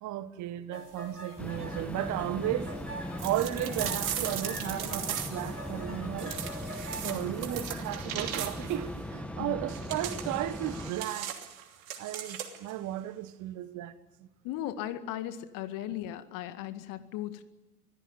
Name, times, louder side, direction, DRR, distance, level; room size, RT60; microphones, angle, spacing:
voice 1, 0.0-2.7 3.2-6.4 7.0-11.3 12.0-14.3, right 13 dB, 40° right, 1.7 m, -34 dB
sound 1, 0.7-7.0, right 1 dB, 90° right, 3.4 m, -44 dB
sound 2, 1.4-10.9, left 1 dB, 5° left, 1.7 m, -39 dB
sound 3, 3.2-5.6 6.2-8.8 9.7-12.7, right 9 dB, 65° right, 3.0 m, -38 dB
voice 2, 14.4-17.4, left 12 dB, 45° left, 2.0 m, -37 dB
26.0 x 16.5 x 9.7 m
figure-of-eight pair, 75°, 45 cm